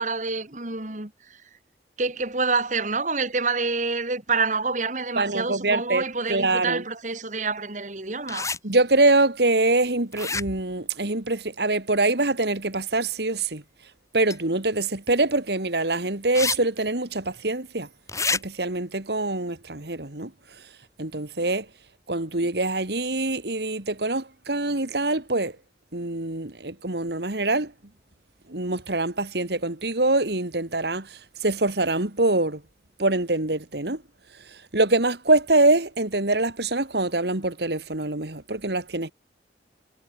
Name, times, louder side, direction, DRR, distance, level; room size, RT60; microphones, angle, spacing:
voice 1, 0.0-1.4 2.0-8.6, right 4 dB, 45° right, 2.4 m, -27 dB
voice 2, 5.2-6.8 8.6-13.6 14.1-17.9 18.3-20.3 21.0-21.7 22.1-25.5 25.9-27.7 28.5-32.6 33.0-34.0 34.5-39.1, right 2 dB, 65° right, 2.3 m, -24 dB
sound 1, 8.3-8.6 10.1-10.7 14.3-14.4 16.3-16.6 16.9-17.0 18.1-18.4, left 4 dB, 15° left, 7.3 m, -27 dB
head